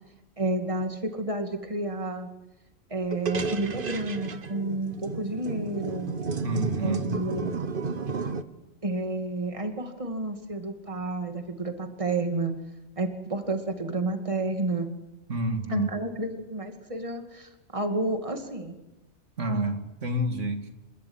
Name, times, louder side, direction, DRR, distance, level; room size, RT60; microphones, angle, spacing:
voice 1, 0.4-2.3 2.9-6.1 6.8-7.5 8.8-12.5 13.0-14.9 15.7-18.8, right 2 dB, 25° right, 6 dB, 2.4 m, -30 dB
sound 1, 3.1-8.4, right 4 dB, 50° right, 1.2 m, -32 dB
voice 2, 6.4-7.2 15.3-15.9 19.4-20.7, right 1 dB, 85° right, 6 dB, 2.5 m, -29 dB
29.0 x 13.5 x 9.7 m, 0.96 s
omnidirectional pair, 1.2 m